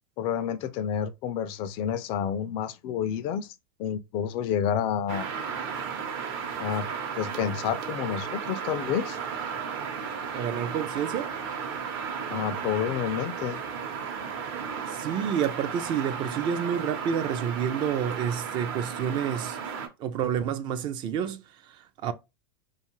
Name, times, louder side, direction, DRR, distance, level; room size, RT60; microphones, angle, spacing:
voice 1, 0.2-3.5 3.8-5.3 6.6-6.9 7.2-9.2 12.3-13.6, left 8 dB, 45° left, 0.4 m, -29 dB
sound 1, 5.1-19.9, right 6 dB, 60° right, 0.9 m, -34 dB
voice 2, 10.3-11.3 14.9-19.6 20.0-22.1, right 8 dB, 35° right, 0.4 m, -29 dB
2.5 x 2.4 x 2.9 m
supercardioid pair, 125°, 13 cm